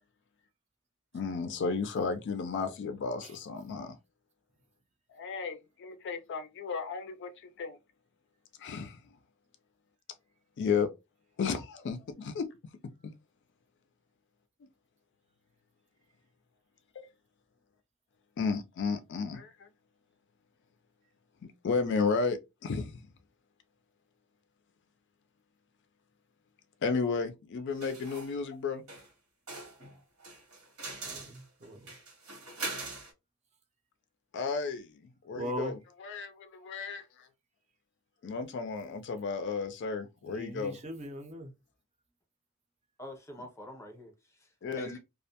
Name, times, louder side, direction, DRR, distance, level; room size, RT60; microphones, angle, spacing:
voice 1, 1.1-4.0 5.1-7.8 8.6-9.0 10.6-10.9 11.4-12.5 13.0-13.1 18.4-19.7 21.4-23.0 26.8-28.8 34.3-37.3 38.2-40.8 44.6-45.0, left 5 dB, 55° left, 0.4 m, -33 dB
sound 1, 27.8-28.3 28.9-29.1 29.5-33.1, right 3 dB, 90° right, 1.2 m, -42 dB
voice 2, 31.1-31.9 35.3-35.8 40.2-41.5, equal, 30° right, 0.5 m, -39 dB
voice 3, 43.0-45.0, left 1 dB, 15° left, 0.7 m, -46 dB
2.4 x 2.1 x 2.7 m
head